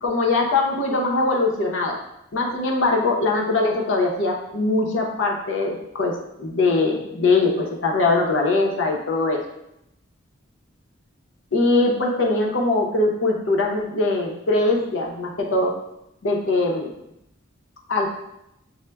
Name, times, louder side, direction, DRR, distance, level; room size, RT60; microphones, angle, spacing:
voice 1, 0.0-2.0 2.3-6.1 6.4-9.4 11.5-15.7 16.2-16.9 17.9-18.1, left 2 dB, 70° left, 0 dB, 0.7 m, -21 dB
6.2 x 2.1 x 2.2 m, 0.83 s
head